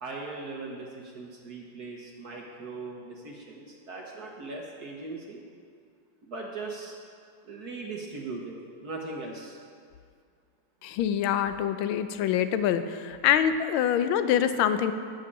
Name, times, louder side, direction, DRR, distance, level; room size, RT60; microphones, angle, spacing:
voice 1, 0.0-5.4 6.2-6.9 7.4-9.6, right 3 dB, 50° right, -1 dB, 1.5 m, -39 dB
voice 2, 10.8-14.9, left 9 dB, 75° left, 10 dB, 1.4 m, -25 dB
12.0 x 6.6 x 8.7 m, 2.2 s
omnidirectional pair, 2.4 m